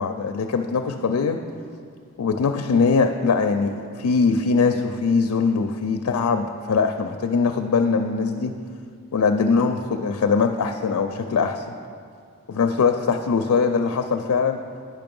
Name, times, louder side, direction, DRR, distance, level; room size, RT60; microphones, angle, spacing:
voice 1, 0.0-1.4 2.2-8.5 9.1-11.7 12.6-14.6, left 5 dB, 85° left, 6 dB, 0.4 m, -21 dB
9.2 x 5.8 x 5.3 m, 2.3 s
head